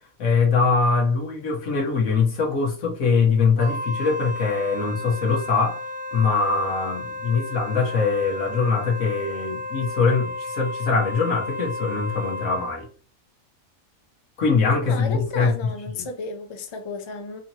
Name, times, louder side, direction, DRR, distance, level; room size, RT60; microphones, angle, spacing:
voice 1, 0.2-5.8 6.1-12.9 14.4-16.0, left 4 dB, 80° left, 1.6 m, -22 dB
Wind instrument woodwind instrument, 3.6-12.9, left 1 dB, 40° right, 0.9 m, -33 dB
voice 2, 14.9-17.4, left 3 dB, 40° left, 0.4 m, -33 dB
4.2 x 2.9 x 2.8 m
omnidirectional pair, 1.4 m